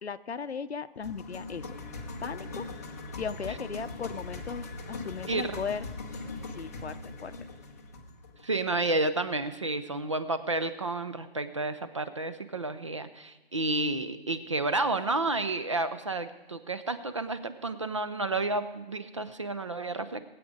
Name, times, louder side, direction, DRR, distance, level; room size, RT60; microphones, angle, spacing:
voice 1, 0.0-1.7 2.2-2.7 3.2-5.9 6.6-7.3, left 6 dB, 80° left, 12 dB, 0.8 m, -37 dB
sound 1, 1.0-9.2, left 3 dB, 15° left, 0.6 m, -41 dB
voice 2, 8.4-20.2, right 2 dB, 30° right, 11 dB, 0.5 m, -31 dB
20.0 x 8.4 x 5.1 m, 1.1 s
hypercardioid pair, 165°, 32 cm